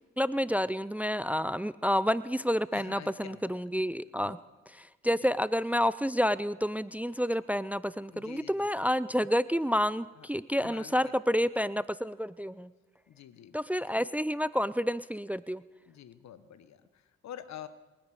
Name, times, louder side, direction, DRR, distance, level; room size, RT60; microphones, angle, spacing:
voice 1, 0.2-4.4 5.0-12.7 13.5-15.6, equal, 5° right, 17 dB, 0.6 m, -29 dB
voice 2, 2.7-3.6 4.1-4.4 5.0-5.1 8.1-8.7 10.1-10.3 10.6-11.2 13.1-13.6 15.9-17.7, left 10 dB, 65° left, 13 dB, 1.2 m, -47 dB
27.5 x 10.5 x 4.9 m, 1.2 s
hypercardioid pair, 45°, 29 cm